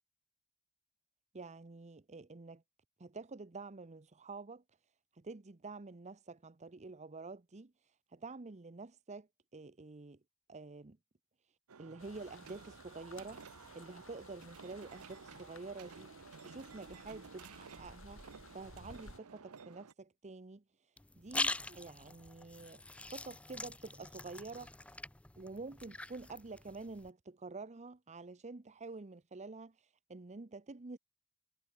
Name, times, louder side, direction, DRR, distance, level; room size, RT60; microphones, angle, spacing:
voice 1, 1.3-2.6 3.0-4.6 5.1-10.2 10.5-11.0 11.8-18.2 18.5-25.0 25.4-31.0, right 3 dB, 30° right, 0.7 m, -48 dB
sound 1, 11.7-19.9, right 5 dB, 75° right, 0.8 m, -54 dB
sound 2, 12.0-19.2, left 3 dB, 65° left, 4.9 m, -58 dB
sound 3, 21.0-27.1, left 2 dB, 5° left, 0.3 m, -42 dB
head